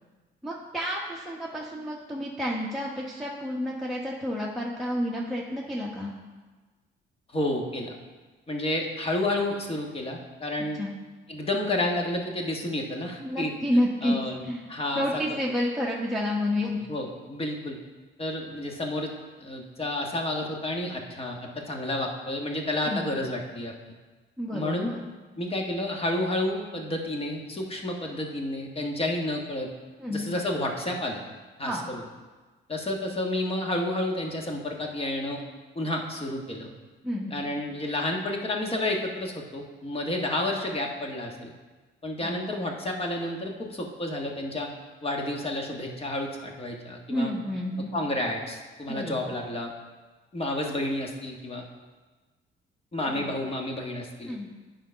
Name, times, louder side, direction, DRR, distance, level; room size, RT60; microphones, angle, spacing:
voice 1, 0.4-6.1 10.8-10.9 13.2-14.1 14.4-14.6 14.9-16.9 22.8-23.1 24.4-25.0 30.0-30.3 31.6-31.8 37.0-37.4 42.2-42.4 47.1-47.9 48.9-49.3 53.1-53.4 54.3-54.5, left 1 dB, ahead, -5 dB, 1.0 m, -30 dB
voice 2, 7.3-7.9 8.5-10.8 11.3-13.5 14.0-14.4 14.7-15.0 16.9-17.8 18.2-19.1 19.4-23.7 24.5-24.9 25.4-29.7 30.1-31.2 31.6-32.0 32.7-35.4 35.7-36.7 37.3-41.5 42.0-44.7 45.0-47.3 47.9-49.7 50.3-51.6 52.9-54.3, left 1 dB, 30° left, 1 dB, 1.4 m, -30 dB
9.2 x 4.0 x 5.6 m, 1.3 s
cardioid pair, 90°, 20 cm